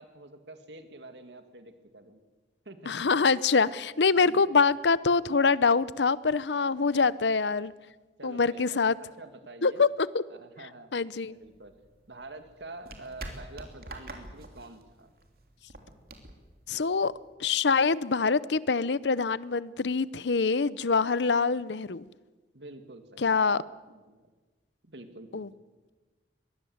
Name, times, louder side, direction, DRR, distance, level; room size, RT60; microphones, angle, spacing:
voice 1, 0.0-2.2 2.6-3.0 4.2-4.5 6.9-7.1 8.2-9.8 10.3-11.7 12.1-15.1 22.5-24.3 24.8-25.4, right 2 dB, 85° right, 2.4 m, -47 dB
voice 2, 2.9-7.7 8.2-9.0 9.6-10.1 10.9-11.4 16.7-17.1 17.4-22.1 23.2-23.6 25.3-25.5, left 4 dB, 85° left, 0.7 m, -25 dB
sound 1, 11.4-17.3, right 2 dB, 60° right, 3.1 m, -46 dB
23.0 x 19.5 x 8.0 m
head